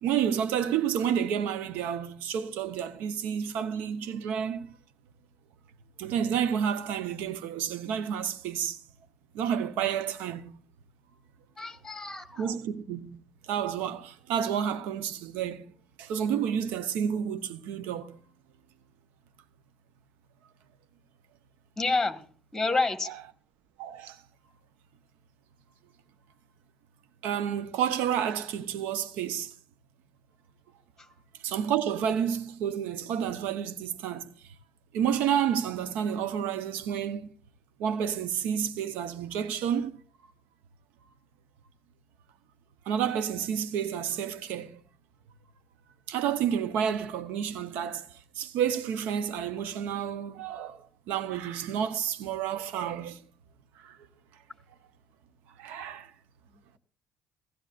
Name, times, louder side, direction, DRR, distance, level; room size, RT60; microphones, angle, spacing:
voice 1, 0.0-4.8 6.0-8.8 9.3-10.6 12.4-13.2 13.5-15.7 16.0-18.2 23.0-23.3 23.8-24.2 27.2-29.5 31.4-34.3 34.9-37.3 37.8-40.0 42.9-44.8 46.1-53.2 53.8-54.0 55.6-56.1, right 8 dB, 75° right, 0.8 m, -30 dB
voice 2, 11.6-12.4 21.8-22.2 22.5-23.1, left 3 dB, 10° left, 1.6 m, -28 dB
16.0 x 15.5 x 2.5 m
hypercardioid pair, 60°, 3 cm